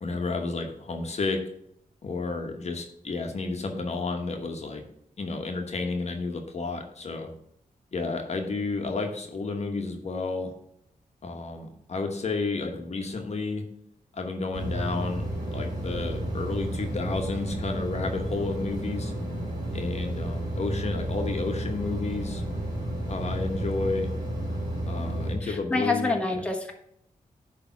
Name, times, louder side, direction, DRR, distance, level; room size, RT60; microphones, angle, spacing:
voice 1, 0.0-1.4 2.0-4.8 5.2-7.3 7.9-10.5 11.2-13.6 14.1-15.2 15.5-19.1 19.7-22.4 23.1-24.1 24.8-26.2, left 3 dB, 50° left, 4 dB, 1.1 m, -31 dB
sound 1, 14.5-25.3, right 1 dB, 30° right, 3.5 m, -31 dB
voice 2, 25.4-26.7, left 3 dB, 10° left, 1 dB, 1.2 m, -27 dB
10.0 x 3.4 x 5.8 m, 0.73 s
wide cardioid pair, 110°, 14 cm